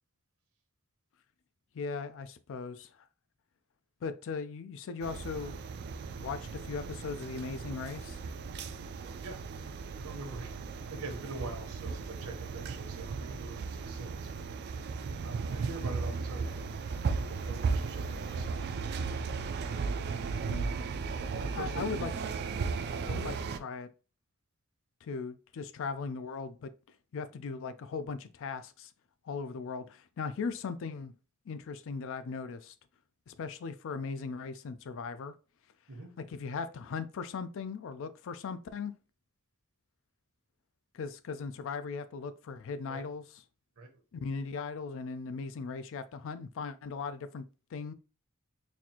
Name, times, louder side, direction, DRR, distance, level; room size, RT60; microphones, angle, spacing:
voice 1, 1.7-2.9 4.0-5.7 6.2-8.2 20.5-20.7 21.5-22.1 23.1-23.9 25.0-26.7 27.1-28.9 29.2-31.1 31.5-32.7 33.3-35.4 36.2-38.9 40.9-43.2 44.1-47.4 47.7-47.9, left 5 dB, 65° left, 0.4 m, -38 dB
sound 1, 5.0-23.6, right 4 dB, 50° right, 0.3 m, -36 dB
voice 2, 10.0-10.6 10.9-14.5 15.2-16.8 17.1-18.6 21.4-22.0 35.9-36.2 42.9-43.0 43.8-43.9, right 2 dB, 75° right, 1.0 m, -44 dB
4.1 x 2.5 x 2.8 m
head